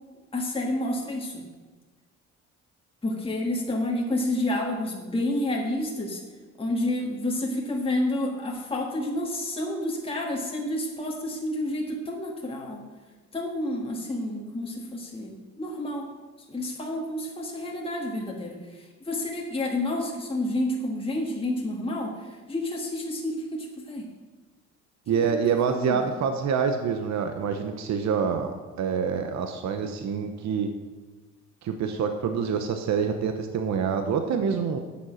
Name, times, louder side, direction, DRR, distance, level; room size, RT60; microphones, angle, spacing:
voice 1, 0.3-1.4 3.0-6.2 6.6-12.8 13.3-16.1 16.5-24.0 25.3-25.4 25.7-26.1, left 1 dB, 20° left, -1 dB, 1.5 m, -29 dB
voice 2, 25.1-30.7 31.6-34.8, right 6 dB, 65° right, 6 dB, 0.9 m, -26 dB
8.9 x 7.2 x 6.3 m, 1.3 s
cardioid pair, 90°, 30 cm